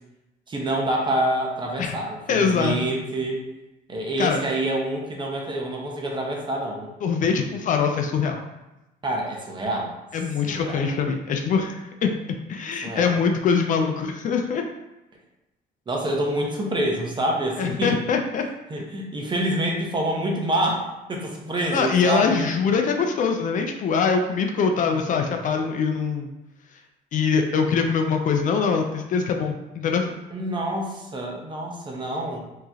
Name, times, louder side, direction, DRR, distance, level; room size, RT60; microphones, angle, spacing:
voice 1, 0.5-3.4 3.9-6.9 9.0-9.9 10.4-10.9 12.8-13.2 15.9-18.0 18.7-22.5 30.3-32.4, right 1 dB, 30° right, 0 dB, 0.9 m, -27 dB
voice 2, 2.3-2.8 4.2-4.4 7.0-8.4 10.1-14.6 17.6-18.4 21.7-26.3 27.1-30.2, left 5 dB, 50° left, 4 dB, 0.5 m, -23 dB
4.4 x 3.1 x 2.8 m, 0.98 s
cardioid pair, 110°, 17 cm